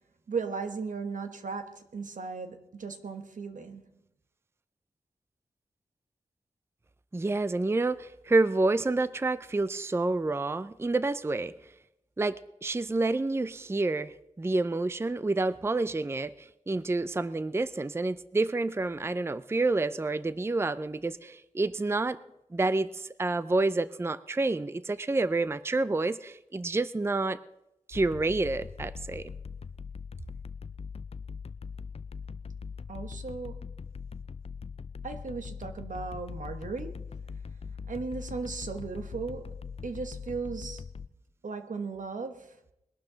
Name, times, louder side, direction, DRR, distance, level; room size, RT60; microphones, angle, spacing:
voice 1, 0.3-3.8 32.9-33.6 35.0-37.0 37.7-39.5 39.8-40.8 41.4-42.5, right 4 dB, 85° right, 1.3 m, -36 dB
voice 2, 7.1-11.5 12.2-12.3 12.6-22.2 22.5-27.4 27.9-29.3, right 2 dB, 20° right, 0.4 m, -28 dB
sound 1, 27.9-41.1, left 5 dB, 50° left, 0.4 m, -41 dB
20.5 x 12.0 x 3.9 m
wide cardioid pair, 90°, 13 cm